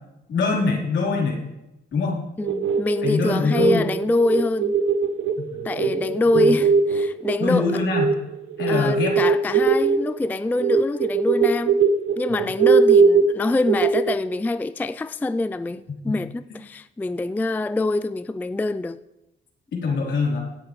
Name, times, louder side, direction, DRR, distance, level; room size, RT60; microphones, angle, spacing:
voice 1, 0.3-1.4 1.9-2.2 3.0-3.8 5.4-6.5 7.4-8.2 8.6-9.1 12.3-12.4 16.0-16.1 19.7-20.4, left 4 dB, 65° left, 3.7 m, -24 dB
voice 2, 2.4-4.7 5.6-7.8 8.7-11.8 12.2-19.0, left 2 dB, 10° left, 0.3 m, -25 dB
sound 1, 2.4-8.2 8.5-14.4, right 5 dB, 90° right, 0.9 m, -21 dB
16.5 x 8.7 x 3.2 m
cardioid pair, 90°, 20 cm